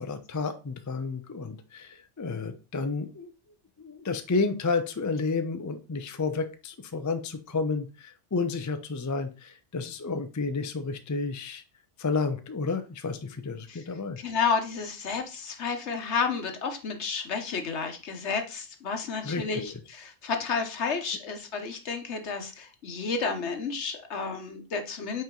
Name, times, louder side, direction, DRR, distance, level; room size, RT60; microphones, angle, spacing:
voice 1, 0.0-3.3 3.8-11.6 12.0-14.2 19.2-19.7, left 4 dB, 30° left, 8 dB, 0.3 m, -31 dB
voice 2, 14.2-25.2, left 5 dB, 70° left, 6 dB, 1.3 m, -31 dB
5.6 x 4.4 x 3.8 m, 0.32 s
omnidirectional pair, 1.2 m